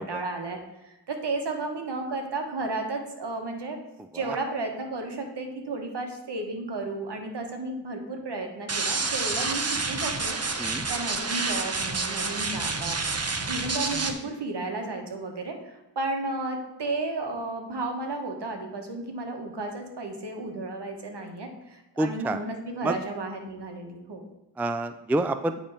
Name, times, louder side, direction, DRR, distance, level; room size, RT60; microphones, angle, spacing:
voice 1, 0.0-3.8 4.1-10.4 10.9-13.0 13.5-24.2, right 2 dB, 65° right, 3 dB, 1.5 m, -33 dB
sound 1, 8.7-14.1, right 3 dB, 35° right, 0.9 m, -29 dB
voice 2, 22.0-22.4 22.8-22.9 24.6-25.6, right 2 dB, 5° right, 10 dB, 0.3 m, -28 dB
8.6 x 3.4 x 5.6 m, 0.97 s
cardioid pair, 55°, 45 cm